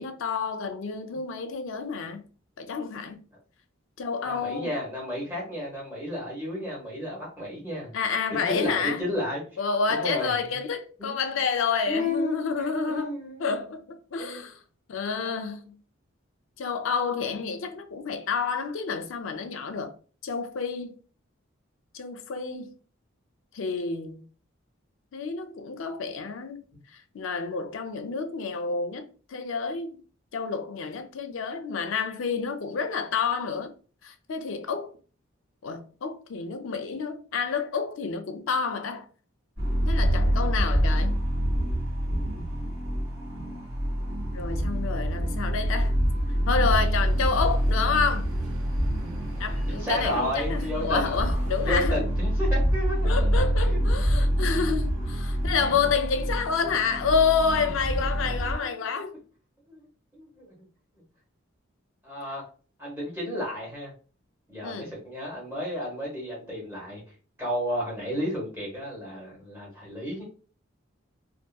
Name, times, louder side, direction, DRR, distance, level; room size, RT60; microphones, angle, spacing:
voice 1, 0.0-2.2 2.6-3.2 4.0-4.7 7.9-9.0 9.6-13.1 13.4-14.6 14.9-15.8 16.6-19.9 20.2-21.0 21.9-22.7 23.5-24.2 25.1-26.6 27.1-30.0 30.3-33.7 34.0-34.9 35.6-39.0 39.9-41.2 44.3-45.9 46.5-48.3 49.4-52.0 53.0-59.2 64.6-64.9, left 5 dB, 65° left, 0.4 m, -29 dB
voice 2, 4.2-7.9 8.3-9.4 9.9-10.6 11.0-11.4 11.9-13.6 14.2-14.4 49.7-51.1 51.6-53.1 53.6-53.8 55.3-55.4 58.2-59.0 59.7-59.8 60.1-60.5 62.0-62.4 62.8-63.9 64.5-67.0 67.4-70.2, left 1 dB, 10° right, 1.1 m, -32 dB
sound 1, 39.6-58.6, equal, 55° right, 1.4 m, -26 dB
sound 2, 46.6-51.8, right 1 dB, 80° right, 0.5 m, -43 dB
2.7 x 2.5 x 2.2 m
head